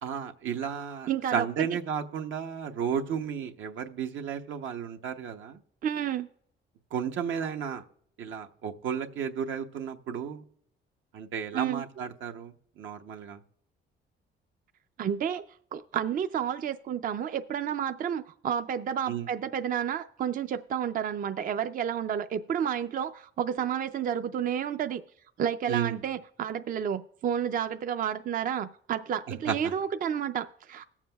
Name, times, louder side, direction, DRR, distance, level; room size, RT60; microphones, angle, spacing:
voice 1, 0.0-5.6 6.9-7.8 8.2-10.4 11.1-13.4 19.1-19.3 25.7-26.0 29.5-29.6, right 7 dB, 75° right, 5 dB, 0.8 m, -33 dB
voice 2, 1.1-1.7 5.8-6.3 11.5-11.8 15.0-15.4 15.7-25.0 25.4-30.9, right 8 dB, 45° right, 10 dB, 0.4 m, -31 dB
20.5 x 7.3 x 2.3 m, 0.64 s
cardioid pair, 90°, 20 cm